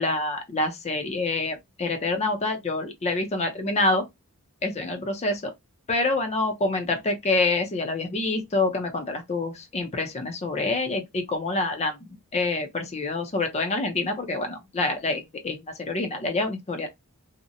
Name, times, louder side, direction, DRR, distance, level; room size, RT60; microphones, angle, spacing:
voice 1, 0.0-4.0 4.6-5.5 5.9-12.0 12.3-16.9, left 2 dB, 30° left, 0.5 m, -27 dB
2.7 x 2.1 x 2.5 m
head